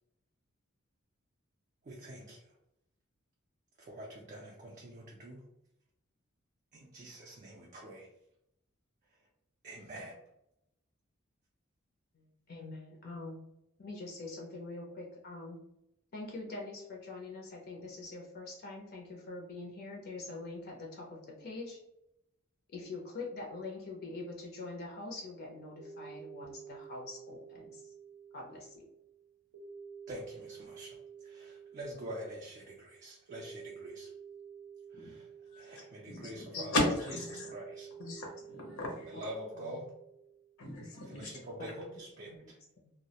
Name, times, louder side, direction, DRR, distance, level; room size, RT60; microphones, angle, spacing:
voice 1, 1.8-2.4 3.8-5.4 6.7-8.1 9.6-10.2 30.1-31.0 31.2-34.1 34.9-35.3 35.6-36.9 37.3-37.9 39.1-39.9 41.1-42.6, right 1 dB, 35° right, -2 dB, 0.3 m, -45 dB
voice 2, 12.1-13.4 13.8-15.6 16.1-21.8 22.7-27.9 28.3-28.9 34.9-35.1 36.6-36.7 37.3-37.5 38.0-38.2 39.5-39.8 41.6-41.7 42.3-42.5 42.8-42.9, left 2 dB, 45° left, -1 dB, 0.4 m, -44 dB
sound 1, 25.2-40.6, right 6 dB, 85° right, 0.6 m, -51 dB
voice 3, 36.1-37.5 38.1-38.3 38.6-39.1 40.6-41.3, left 1 dB, 80° left, -1 dB, 0.7 m, -35 dB
2.2 x 2.0 x 2.7 m, 0.83 s
head